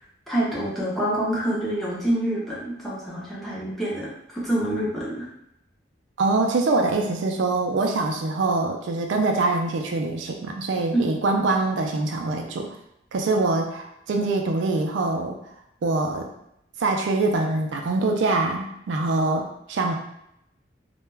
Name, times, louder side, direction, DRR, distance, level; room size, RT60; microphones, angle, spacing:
voice 1, 0.3-5.3 10.9-11.1, right 1 dB, ahead, -7 dB, 0.6 m, -26 dB
voice 2, 6.2-12.7 13.1-15.4 15.8-16.3 16.8-19.9, right 3 dB, 70° right, 2 dB, 0.3 m, -24 dB
2.2 x 2.1 x 3.2 m, 0.79 s
head